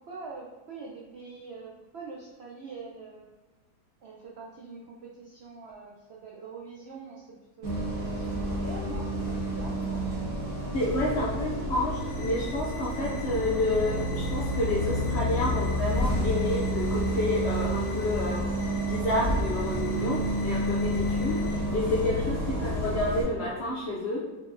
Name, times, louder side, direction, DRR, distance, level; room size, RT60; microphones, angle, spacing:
voice 1, 0.1-3.2 4.0-10.0 11.7-11.8 22.1-22.6, right 4 dB, 85° right, -2 dB, 0.5 m, -44 dB
Bus, 7.6-23.2, equal, 50° right, 1.8 m, -29 dB
voice 2, 10.7-18.5 18.8-24.2, left 1 dB, 75° left, -4 dB, 0.6 m, -29 dB
sound 1, 11.9-21.6, left 5 dB, 55° left, 0.9 m, -47 dB
4.3 x 3.9 x 2.5 m, 1.1 s
omnidirectional pair, 1.7 m